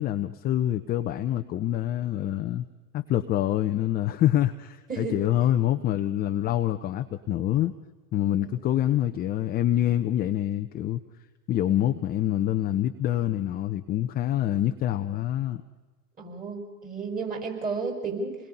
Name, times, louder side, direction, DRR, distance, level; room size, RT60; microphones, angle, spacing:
voice 1, 0.0-2.7 2.9-7.7 8.1-11.0 11.5-15.6, left 12 dB, 20° left, 7 dB, 0.7 m, -26 dB
voice 2, 4.9-5.2 8.7-8.8 16.2-18.4, right 4 dB, 20° right, 2 dB, 5.4 m, -32 dB
27.5 x 21.0 x 5.5 m, 1.2 s
hypercardioid pair, 105°, 46 cm